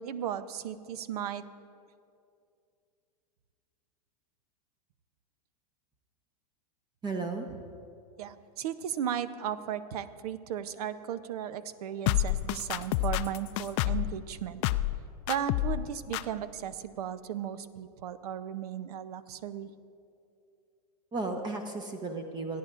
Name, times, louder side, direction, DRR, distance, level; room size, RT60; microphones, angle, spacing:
voice 1, 0.0-1.4 8.2-14.6 15.3-19.7, right 9 dB, 70° right, 14 dB, 0.7 m, -36 dB
voice 2, 7.0-7.6 21.1-22.6, right 3 dB, 20° right, 5 dB, 1.0 m, -34 dB
sound 1, 12.1-14.1 14.6-15.0 15.3-15.8 16.1-16.2, left 16 dB, 50° left, 0.4 m, -28 dB
28.5 x 10.5 x 2.5 m, 2.5 s
hypercardioid pair, 105°, 20 cm